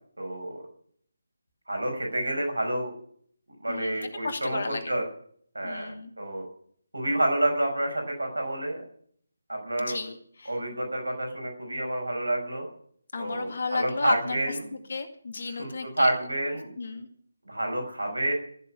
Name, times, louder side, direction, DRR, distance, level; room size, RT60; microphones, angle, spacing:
voice 1, 0.2-0.6 1.7-2.9 3.6-5.1 5.5-5.9 6.2-6.5 6.9-8.8 9.5-10.0 10.5-12.7 13.2-14.7 15.4-16.7 17.5-18.3, right 1 dB, 70° right, 3 dB, 5.6 m, -29 dB
voice 2, 3.7-4.9 5.6-6.1 9.9-10.5 13.1-14.4 14.9-16.1 16.8-17.1, left 4 dB, 45° left, 6 dB, 2.1 m, -33 dB
13.5 x 7.8 x 10.0 m, 0.62 s
figure-of-eight pair, 150°, 0 cm